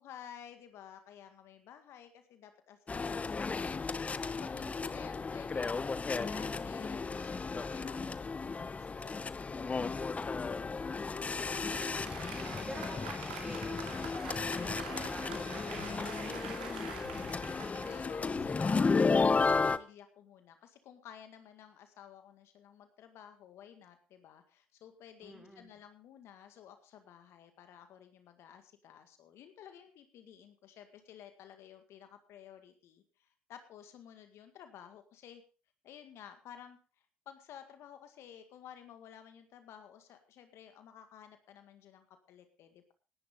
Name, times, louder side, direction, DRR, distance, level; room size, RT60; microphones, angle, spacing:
voice 1, 0.0-13.2 17.5-35.4 35.8-36.8 37.3-42.9, left 9 dB, 65° left, 8 dB, 1.9 m, -54 dB
sound 1, 2.9-19.8, left 4 dB, 30° left, 0.9 m, -34 dB
Applause, 11.2-18.9, right 5 dB, 90° right, 2.6 m, -46 dB
voice 2, 12.4-17.3 25.2-25.7, right 1 dB, 5° right, 2 dB, 5.5 m, -50 dB
sound 2, 15.8-19.3, left 5 dB, 85° left, 4.8 m, -55 dB
18.0 x 11.0 x 3.7 m, 0.34 s
hypercardioid pair, 55°, 5 cm